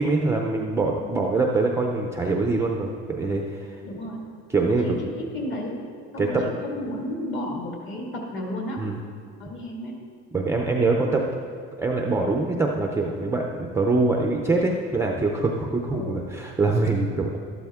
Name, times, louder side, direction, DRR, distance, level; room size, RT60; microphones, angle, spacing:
voice 1, 0.0-3.7 4.5-5.0 6.2-6.4 8.8-9.0 10.3-11.3 11.8-17.4, right 3 dB, 10° right, 0 dB, 0.5 m, -24 dB
voice 2, 3.8-4.2 4.8-5.8 6.1-8.8 9.4-10.0 15.9-16.3, left 1 dB, 40° left, -1 dB, 2.0 m, -33 dB
12.5 x 12.0 x 3.6 m, 2.3 s
cardioid pair, 175°, 30 cm